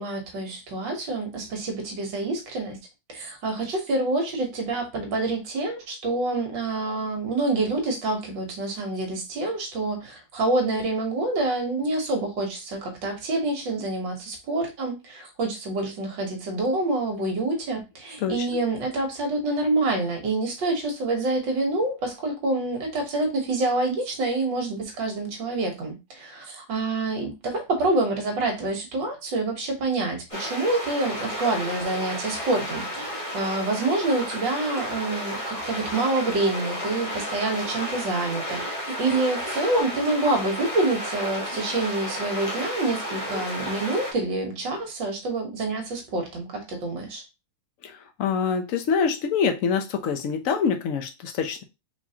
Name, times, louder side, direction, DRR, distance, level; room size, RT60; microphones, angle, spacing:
voice 1, 0.0-2.8 3.1-47.2, right 2 dB, 65° right, 1.9 m, -27 dB
sound 1, 30.3-44.1, equal, 20° left, 1.0 m, -32 dB
voice 2, 47.8-51.6, left 6 dB, 70° left, 0.7 m, -25 dB
4.4 x 4.1 x 2.8 m
omnidirectional pair, 2.3 m